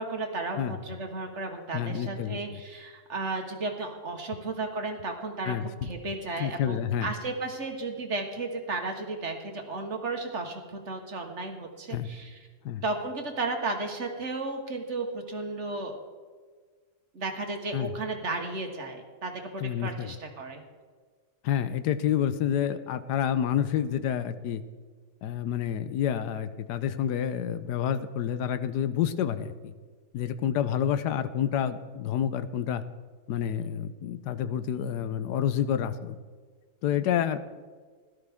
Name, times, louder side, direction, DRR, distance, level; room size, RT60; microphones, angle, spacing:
voice 1, 0.0-5.5 5.8-12.5 12.8-16.0 17.1-20.6, right 3 dB, 45° right, 3 dB, 1.5 m, -34 dB
voice 2, 1.7-2.4 5.5-5.9 6.4-7.1 11.9-12.1 12.6-12.8 17.7-17.9 19.6-20.1 21.4-24.6 25.2-29.7 30.1-32.8 33.3-36.2 36.8-37.4, left 9 dB, 90° left, 12 dB, 1.3 m, -28 dB
16.5 x 12.5 x 3.6 m, 1.5 s
omnidirectional pair, 1.7 m